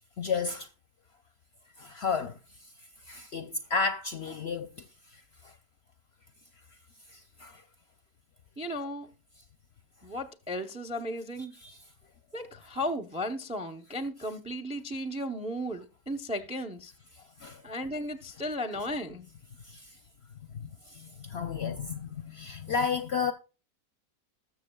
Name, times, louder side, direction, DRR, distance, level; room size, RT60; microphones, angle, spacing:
voice 1, 0.2-0.7 1.8-2.4 3.1-4.9 5.1-5.5 7.1-7.6 11.6-11.8 17.4-17.6 19.7-19.9 20.5-23.3, left 5 dB, 60° left, 0.7 m, -33 dB
voice 2, 8.6-9.1 10.0-11.5 12.3-16.9 17.6-19.3, equal, 10° right, 0.3 m, -35 dB
20.0 x 6.8 x 2.3 m
omnidirectional pair, 1.7 m